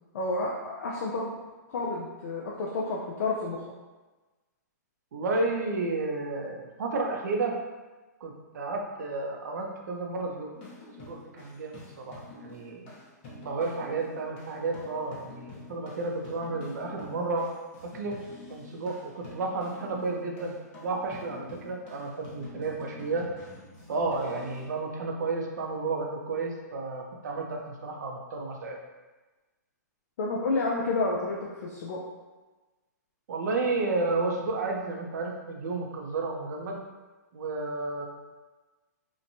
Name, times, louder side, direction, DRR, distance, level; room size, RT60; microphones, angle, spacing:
voice 1, 0.1-1.3 1.7-3.6 30.2-32.0, left 3 dB, 55° left, -3 dB, 0.4 m, -30 dB
voice 2, 5.1-7.6 8.2-10.5 11.0-12.9 13.3-17.5 17.8-18.2 18.5-23.3 23.9-28.8 33.3-36.8 37.3-38.1, right 3 dB, 65° right, 1 dB, 0.5 m, -32 dB
sound 1, 10.5-24.7, left 2 dB, 35° left, 0.8 m, -48 dB
2.9 x 2.2 x 2.6 m, 1.2 s
hypercardioid pair, 160°, 10 cm